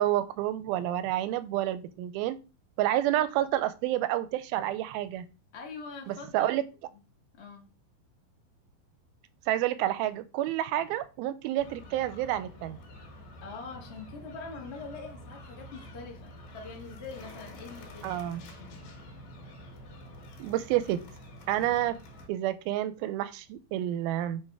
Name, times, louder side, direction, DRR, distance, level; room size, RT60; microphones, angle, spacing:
voice 1, 0.0-2.4 2.8-5.3 6.1-6.6 9.5-12.8 18.0-18.4 20.4-21.0 21.5-22.0 22.3-24.4, right 13 dB, 90° right, 13 dB, 2.5 m, -29 dB
voice 2, 5.5-6.5 7.4-7.6 13.4-19.0, left 4 dB, 65° left, 0 dB, 0.6 m, -44 dB
sound 1, 11.6-22.3, equal, 85° left, 3.5 m, -48 dB
7.8 x 3.6 x 4.7 m, 0.31 s
omnidirectional pair, 4.2 m